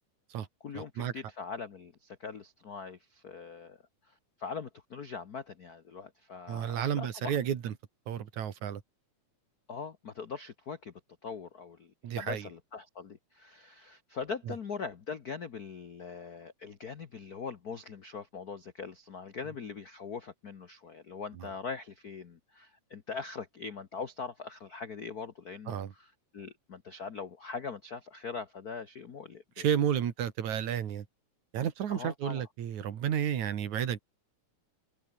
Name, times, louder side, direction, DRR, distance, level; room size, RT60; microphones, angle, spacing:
voice 1, 0.6-7.4 9.7-10.9 11.2-29.7 31.9-32.5, left 5 dB, 70° left, 0.8 m, -42 dB
voice 2, 6.5-7.7 8.1-8.8 12.0-12.4 25.7-25.9 29.6-31.0 31.5-34.0, right 9 dB, 65° right, 3.1 m, -31 dB
omnidirectional pair, 3.7 m